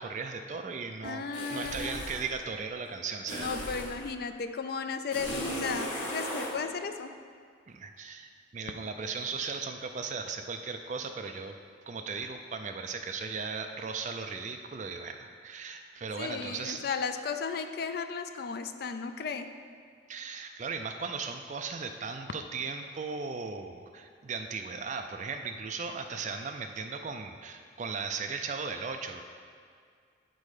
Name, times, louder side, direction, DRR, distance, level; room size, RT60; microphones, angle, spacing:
voice 1, 0.0-3.5 7.7-11.5 11.9-16.8 20.1-29.2, right 5 dB, 35° right, 5 dB, 0.3 m, -37 dB
voice 2, 1.0-2.0 3.4-7.1 16.2-19.5, left 5 dB, 50° left, 8 dB, 0.4 m, -35 dB
sound 1, 1.3-2.3 3.3-4.0 5.1-6.5, equal, 90° left, 1.6 m, -36 dB
8.4 x 4.2 x 4.9 m, 2.1 s
head